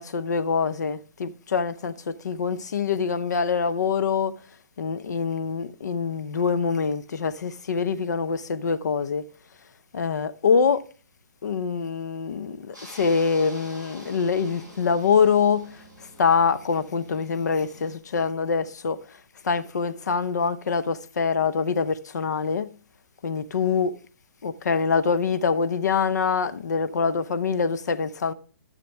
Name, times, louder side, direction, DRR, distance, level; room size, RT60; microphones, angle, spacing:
voice 1, 0.0-4.4 4.8-9.3 9.9-10.8 11.4-22.7 23.2-24.0 24.4-28.3, left 5 dB, 70° left, 0.8 m, -25 dB
sound 1, 12.7-18.0, equal, 10° left, 5.0 m, -47 dB
12.5 x 6.8 x 3.4 m
hypercardioid pair, 160°, 10 cm